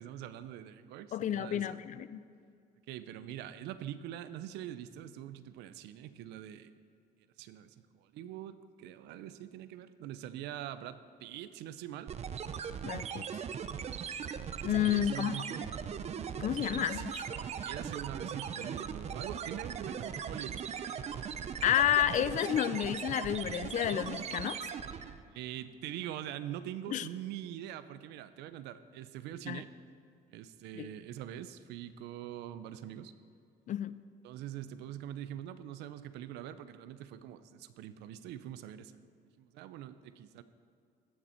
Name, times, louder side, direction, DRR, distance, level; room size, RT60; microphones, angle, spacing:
voice 1, 0.0-1.8 2.9-6.7 7.4-12.2 14.7-15.9 16.7-17.0 17.3-20.7 25.3-29.7 30.3-33.1 34.2-39.0 39.4-40.4, right 11 dB, 85° right, 13 dB, 0.5 m, -44 dB
voice 2, 1.1-2.2 12.8-13.3 14.6-15.4 16.4-17.2 21.6-24.7 26.9-27.1 29.5-29.6 30.7-30.9 33.7-34.0, left 10 dB, 50° left, 15 dB, 0.4 m, -30 dB
sound 1, 12.1-25.2, right 7 dB, 40° right, 0.5 m, -39 dB
15.0 x 6.9 x 4.4 m, 2.4 s
cardioid pair, 110°, 17 cm